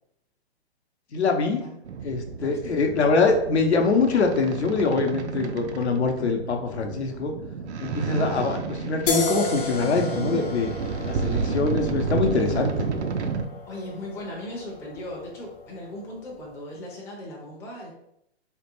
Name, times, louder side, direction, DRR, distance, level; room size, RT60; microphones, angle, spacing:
voice 1, 1.1-1.6 2.0-7.3 7.8-10.7 11.0-12.9, left 4 dB, 80° left, 4 dB, 0.7 m, -24 dB
sound 1, 1.8-13.4, right 5 dB, 85° right, 0.5 m, -31 dB
voice 2, 2.4-2.8 13.7-17.9, left 1 dB, 10° left, -3 dB, 0.4 m, -38 dB
sound 2, 9.1-16.4, left 2 dB, 50° left, 0.8 m, -34 dB
3.6 x 2.2 x 2.9 m, 0.77 s
hypercardioid pair, 125°, 32 cm